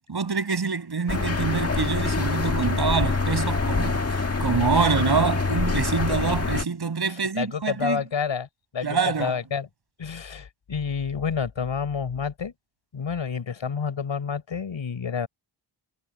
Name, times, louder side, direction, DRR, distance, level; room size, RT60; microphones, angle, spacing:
voice 1, 0.1-4.0 4.4-8.0 8.8-9.4, right 5 dB, 50° right, 6.4 m, -25 dB
sound 1, 1.1-6.6, left 3 dB, 30° left, 1.7 m, -25 dB
voice 2, 7.3-8.5 8.7-9.7 10.0-12.5 12.9-15.3, left 6 dB, 65° left, 6.8 m, -29 dB
wide cardioid pair, 140°, 50 cm